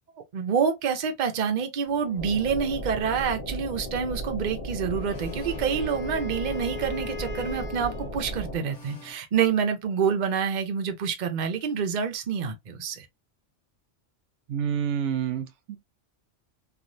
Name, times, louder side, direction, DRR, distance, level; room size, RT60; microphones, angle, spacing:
voice 1, 0.3-13.1, right 6 dB, 45° right, 0.7 m, -27 dB
sound 1, 1.8-9.2, left 4 dB, 80° left, 1.4 m, -47 dB
sound 2, 2.2-8.6, right 1 dB, 45° left, 1.1 m, -35 dB
Wind instrument woodwind instrument, 4.9-8.2, left 4 dB, 65° left, 0.4 m, -40 dB
voice 2, 14.5-15.8, right 8 dB, 80° right, 0.9 m, -28 dB
3.1 x 2.4 x 2.5 m
omnidirectional pair, 1.2 m